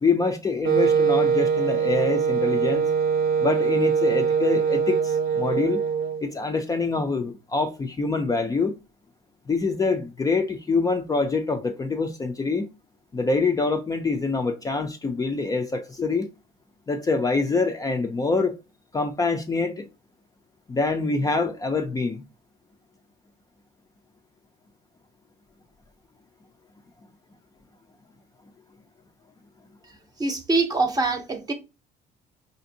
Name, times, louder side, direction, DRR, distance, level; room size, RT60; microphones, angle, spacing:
voice 1, 0.0-2.9 3.4-5.8 6.2-8.8 9.5-12.7 13.1-16.3 16.9-18.5 18.9-19.9 20.7-22.2, left 3 dB, 20° left, 0.4 m, -25 dB
Wind instrument woodwind instrument, 0.6-6.3, right 6 dB, 65° right, 0.6 m, -22 dB
voice 2, 30.2-31.5, right 3 dB, 20° right, 0.7 m, -24 dB
4.9 x 2.6 x 2.7 m
cardioid pair, 110°, 17 cm